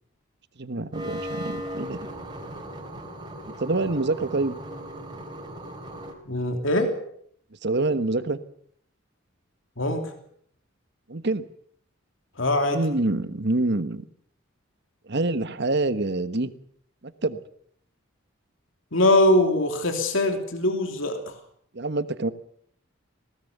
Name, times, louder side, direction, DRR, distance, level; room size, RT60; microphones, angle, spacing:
voice 1, 0.6-2.0 3.6-4.6 7.6-8.4 11.1-11.4 12.7-14.0 15.1-16.5 17.2-17.4 21.7-22.3, right 2 dB, 55° right, 12 dB, 1.3 m, -26 dB
sound 1, 0.9-6.1, equal, 20° right, 3.6 m, -37 dB
voice 2, 6.3-6.9 9.8-10.0 12.4-12.8 18.9-21.3, left 1 dB, 70° left, 5 dB, 3.0 m, -22 dB
21.0 x 18.5 x 6.8 m, 0.65 s
head